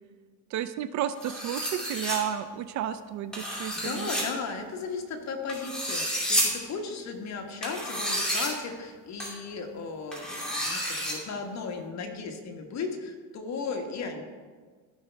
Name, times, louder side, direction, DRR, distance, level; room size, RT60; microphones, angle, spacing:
voice 1, 0.5-4.1, right 10 dB, 50° right, 12 dB, 0.5 m, -32 dB
sound 1, 1.2-2.2 3.3-4.2 5.5-6.4 7.6-8.5 9.2-9.3 10.1-11.1, equal, ahead, 2.6 m, -30 dB
voice 2, 3.5-14.2, left 4 dB, 45° left, 4 dB, 1.4 m, -36 dB
14.5 x 5.7 x 3.4 m, 1.5 s
cardioid pair, 120°, 38 cm